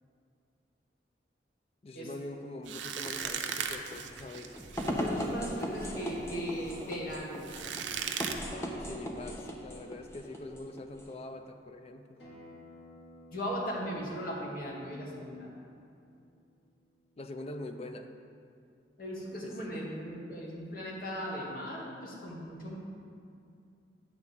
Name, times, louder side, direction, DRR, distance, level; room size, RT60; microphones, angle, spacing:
voice 1, 1.8-4.6 8.8-12.2 17.2-18.1 19.4-19.5, left 2 dB, 35° left, 7 dB, 0.4 m, -43 dB
sound 1, 2.7-8.3, right 7 dB, 90° right, 0.6 m, -39 dB
sound 2, 3.0-11.2, equal, 15° left, 0.8 m, -38 dB
voice 2, 5.0-7.5 13.3-15.5 19.0-22.8, equal, 55° left, -3 dB, 1.7 m, -38 dB
Acoustic guitar, 12.2-17.4, left 1 dB, 85° left, 2.0 m, -56 dB
9.5 x 3.7 x 6.9 m, 2.5 s
head